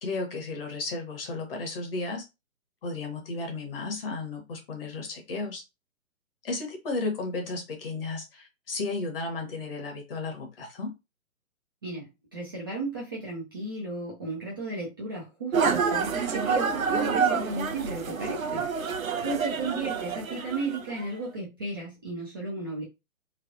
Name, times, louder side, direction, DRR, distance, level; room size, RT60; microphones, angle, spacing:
voice 1, 0.0-2.2 2.8-5.6 6.4-10.9, left 3 dB, 45° left, 3 dB, 1.1 m, -34 dB
voice 2, 11.8-18.7 19.2-22.8, right 2 dB, 15° right, -5 dB, 0.5 m, -34 dB
sound 1, 15.5-21.1, right 6 dB, 80° right, 0.6 m, -28 dB
3.2 x 2.3 x 2.6 m, 0.25 s
figure-of-eight pair, 130°, 41 cm